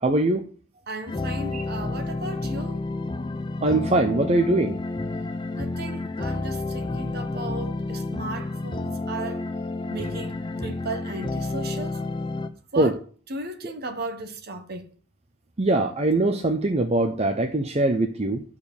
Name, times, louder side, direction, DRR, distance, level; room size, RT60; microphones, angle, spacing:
voice 1, 0.0-0.4 1.5-1.6 3.6-4.8 12.8-13.0 15.6-18.4, right 2 dB, 30° right, 0.7 m, -22 dB
voice 2, 0.9-2.8 5.6-9.5 9.9-12.0 12.7-13.0 13.3-14.9, right 2 dB, 45° right, 1.2 m, -35 dB
sound 1, 1.1-12.5, left 2 dB, 20° left, 0.5 m, -30 dB
11.0 x 4.9 x 7.0 m
head